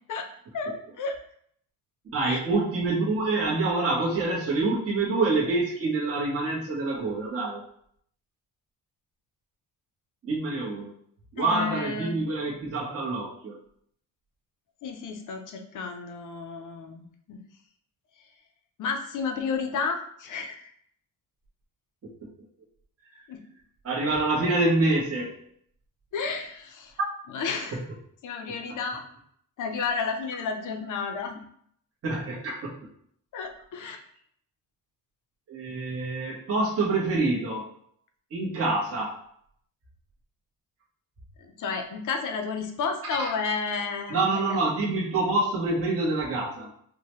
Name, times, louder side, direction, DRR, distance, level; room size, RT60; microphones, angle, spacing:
voice 1, 0.5-1.1 2.2-2.4 11.4-12.2 14.8-17.4 18.8-20.7 23.3-23.4 26.1-27.0 27.3-27.8 28.2-29.0 29.6-31.4 33.3-34.0 41.4-44.6, left 5 dB, 60° left, 5 dB, 0.6 m, -32 dB
voice 2, 2.1-7.6 10.2-10.9 11.3-13.5 23.1-23.2 23.8-25.4 27.7-27.8 32.0-32.8 35.5-37.7 38.3-39.2 43.2-43.3 44.1-46.7, right 2 dB, 40° right, -5 dB, 0.9 m, -26 dB
4.6 x 2.1 x 3.0 m, 0.66 s
wide cardioid pair, 175°, 35 cm